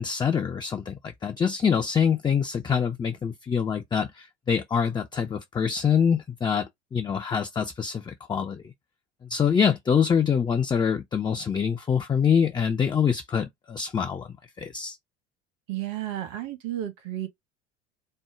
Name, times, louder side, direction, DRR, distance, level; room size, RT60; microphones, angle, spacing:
voice 1, 0.0-8.7 9.3-14.3 14.6-15.0, left 7 dB, 15° left, 0.4 m, -25 dB
voice 2, 15.7-17.3, right 13 dB, 60° right, 1.2 m, -32 dB
4.3 x 2.1 x 3.6 m
figure-of-eight pair, 65°, 32 cm